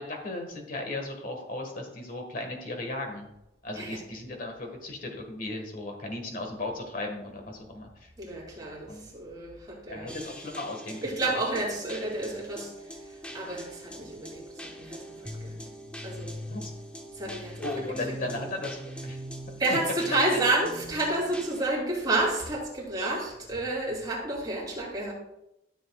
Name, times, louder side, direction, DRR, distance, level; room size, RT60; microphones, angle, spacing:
voice 1, 0.0-3.3 3.6-8.1 8.9-9.1 9.9-11.0 16.5-16.7 17.6-19.2 19.7-19.8 20.1-20.2, left 2 dB, 50° left, 3 dB, 1.7 m, -36 dB
voice 2, 3.7-4.0 8.2-10.2 11.0-12.7 13.3-15.6 16.0-16.3 17.1-18.5 19.6-25.1, right 2 dB, 25° right, -4 dB, 2.9 m, -30 dB
sound 1, 10.1-21.6, equal, 5° left, 0.8 m, -42 dB
13.0 x 7.2 x 2.4 m, 0.88 s
head